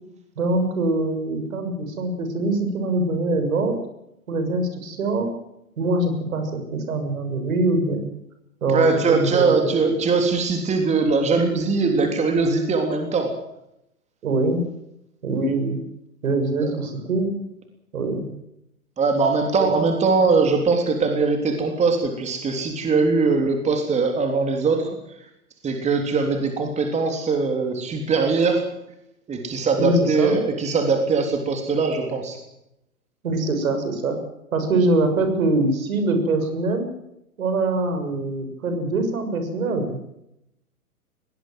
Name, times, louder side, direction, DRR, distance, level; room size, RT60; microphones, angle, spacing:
voice 1, 0.4-3.8 4.3-5.3 5.8-8.1 8.6-9.7 14.2-14.6 15.2-15.8 16.2-17.3 17.9-18.2 19.6-19.8 29.8-30.4 33.2-34.2 34.5-36.9 37.4-40.0, right 2 dB, 65° right, 7 dB, 6.8 m, -23 dB
voice 2, 8.7-13.3 16.6-16.7 19.0-25.3 25.6-28.6 29.3-32.4, right 4 dB, 15° right, 4 dB, 3.5 m, -21 dB
22.5 x 18.5 x 7.7 m, 0.83 s
hypercardioid pair, 125°, 44 cm